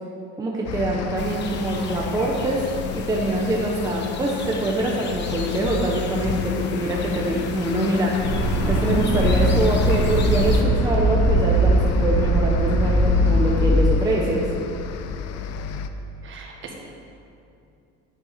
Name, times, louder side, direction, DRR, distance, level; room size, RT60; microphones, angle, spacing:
voice 1, 0.4-2.6 2.9-8.1 8.7-14.5, right 2 dB, 10° right, -3 dB, 0.9 m, -24 dB
sound 1, 0.7-15.9, left 7 dB, 55° left, 0.7 m, -33 dB
sound 2, 1.2-10.6, left 6 dB, 35° left, 1.0 m, -34 dB
sound 3, 8.2-13.7, equal, 15° left, 2.9 m, -20 dB
voice 2, 16.2-16.8, right 5 dB, 40° right, 0 dB, 1.7 m, -40 dB
9.1 x 9.1 x 6.6 m, 2.6 s
cardioid pair, 170°, 30 cm